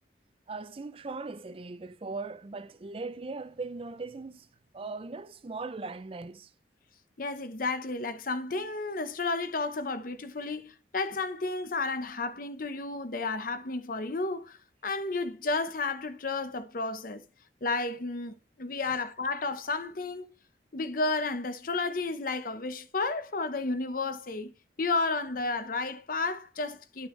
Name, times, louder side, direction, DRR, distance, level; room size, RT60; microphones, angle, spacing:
voice 1, 0.5-4.5 4.7-6.5 18.9-19.0, right 3 dB, 30° right, 0.4 m, -39 dB
voice 2, 7.2-14.6 14.8-17.2 17.6-20.3 20.7-24.5 24.8-27.1, left 3 dB, 50° left, 0.8 m, -32 dB
11.0 x 6.1 x 3.2 m
head